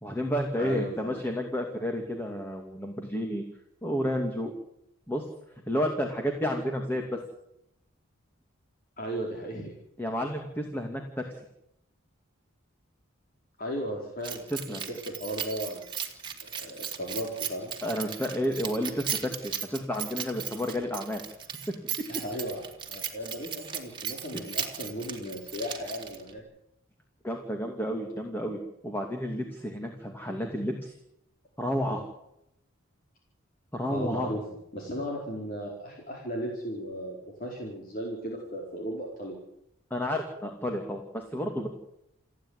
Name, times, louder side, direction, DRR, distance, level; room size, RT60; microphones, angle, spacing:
voice 1, 0.0-3.4 3.8-4.5 5.1-5.2 5.5-7.2 10.0-11.3 14.5-14.8 17.8-21.2 24.3-24.4 27.2-30.9 31.6-32.0 33.7-34.3 39.9-41.7, equal, 10° left, 2 dB, 2.6 m, -31 dB
voice 2, 0.6-1.2 9.0-9.7 13.6-14.8 15.1-15.8 16.4-17.7 22.1-26.4 33.9-34.4 34.7-39.4, equal, 45° left, -1 dB, 4.6 m, -36 dB
Keys jangling, 14.2-26.4, right 8 dB, 20° right, 2.6 m, -37 dB
29.5 x 10.0 x 9.8 m, 0.79 s
head